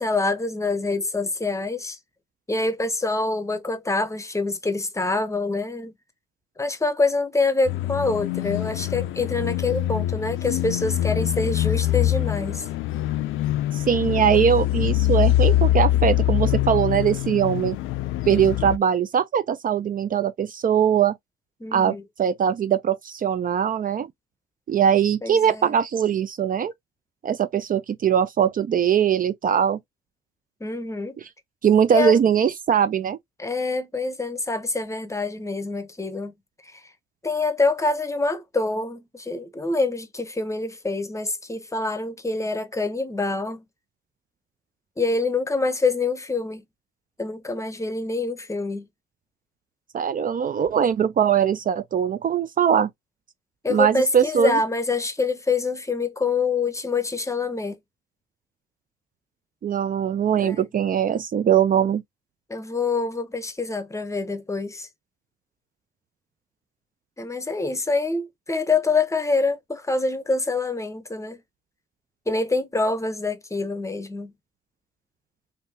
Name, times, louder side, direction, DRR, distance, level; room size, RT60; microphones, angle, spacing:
voice 1, 0.0-2.0 2.5-5.9 6.6-12.7 21.6-22.0 25.2-25.8 30.6-31.2 31.9-32.2 33.4-36.3 36.6-36.8 37.2-43.6 45.0-46.6 47.2-48.8 53.6-57.8 60.4-60.7 62.5-64.9 67.2-71.4 72.3-74.3, left 3 dB, 15° left, 0.7 m, -26 dB
sound 1, 7.7-18.8, left 14 dB, 90° left, 0.4 m, -24 dB
voice 2, 13.7-17.8 18.3-21.2 21.7-24.1 24.7-26.7 27.2-29.8 31.6-33.2 49.9-52.9 53.7-54.5 59.6-62.0, right 8 dB, 45° right, 0.5 m, -21 dB
3.4 x 2.6 x 2.8 m
cardioid pair, 90°, 20 cm